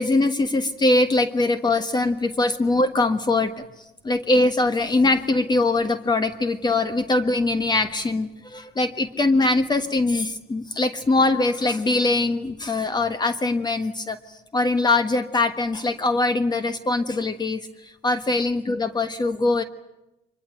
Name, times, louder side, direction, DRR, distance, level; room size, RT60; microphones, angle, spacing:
voice 1, 0.0-3.5 4.0-19.6, left 2 dB, 25° left, 10 dB, 1.4 m, -22 dB
25.0 x 21.5 x 9.0 m, 0.92 s
cardioid pair, 110°, 17 cm